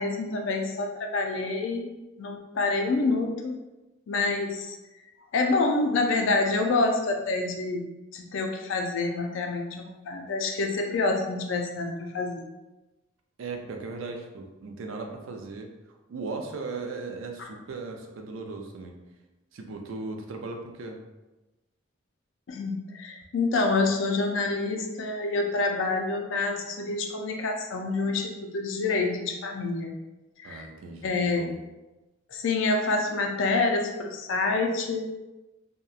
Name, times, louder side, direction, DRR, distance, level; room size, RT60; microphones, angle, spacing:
voice 1, 0.0-1.9 2.2-3.5 4.1-4.8 5.3-7.9 8.1-12.5 17.4-17.5 22.5-29.9 30.4-30.7 31.0-31.5 32.3-35.0, left 3 dB, 75° left, 3 dB, 0.4 m, -27 dB
voice 2, 13.4-15.7 16.1-19.0 19.5-21.0 30.4-31.5, right 3 dB, 85° right, 3 dB, 0.4 m, -37 dB
2.8 x 2.1 x 2.3 m, 1.1 s
head